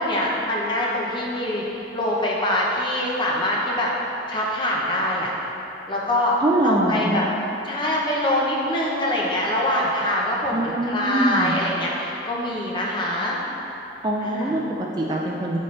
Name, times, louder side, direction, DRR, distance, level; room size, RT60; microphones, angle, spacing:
voice 1, 0.0-3.9 4.3-5.3 5.9-6.4 6.6-7.2 7.6-13.4 14.2-14.5, left 1 dB, 25° left, -4 dB, 0.8 m, -24 dB
voice 2, 6.4-7.3 10.5-11.6 14.0-15.6, right 1 dB, 25° right, -2 dB, 0.4 m, -23 dB
8.4 x 4.1 x 3.2 m, 3.0 s
head